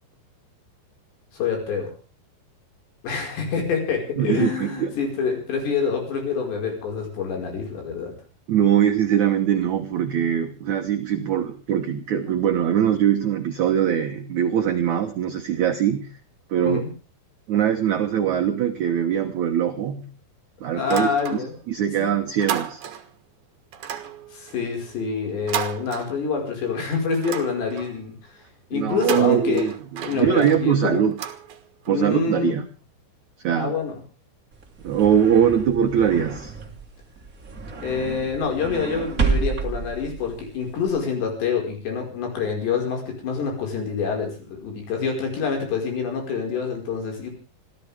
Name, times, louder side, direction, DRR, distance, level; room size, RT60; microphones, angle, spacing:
voice 1, 1.3-1.9 3.0-8.1 11.1-11.2 16.6-16.9 20.7-21.5 22.0-22.1 24.3-28.2 28.7-29.7 30.0-31.0 31.9-32.6 33.6-34.0 37.8-47.3, left 5 dB, 65° left, 2 dB, 7.2 m, -26 dB
voice 2, 4.2-4.9 8.5-16.1 16.5-16.8 17.5-20.0 20.6-22.8 28.7-31.2 31.9-32.7 33.4-33.7 34.8-36.5, right 9 dB, 80° right, 5 dB, 1.6 m, -22 dB
sound 1, 20.8-21.8 22.1-23.2 23.7-26.6 26.9-28.1 28.8-32.0, right 9 dB, 55° right, 2.3 m, -34 dB
sound 2, 34.5-40.9, right 4 dB, 40° right, 1.2 m, -30 dB
26.5 x 15.0 x 3.5 m, 0.36 s
omnidirectional pair, 5.4 m